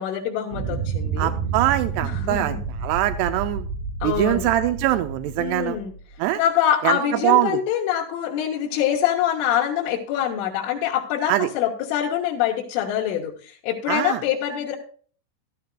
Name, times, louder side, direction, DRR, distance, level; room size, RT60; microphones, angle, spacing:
voice 1, 0.0-1.3 2.0-2.6 4.0-4.5 5.4-5.9 6.4-14.8, left 10 dB, 85° left, -3 dB, 3.6 m, -25 dB
sound 1, 0.5-6.3, right 5 dB, 60° right, 2.7 m, -30 dB
voice 2, 1.2-3.7 4.0-5.8 6.2-6.4 6.8-7.6 11.3-11.5 13.9-14.2, right 14 dB, 85° right, 9 dB, 2.4 m, -23 dB
13.5 x 13.0 x 2.3 m, 0.44 s
omnidirectional pair, 5.5 m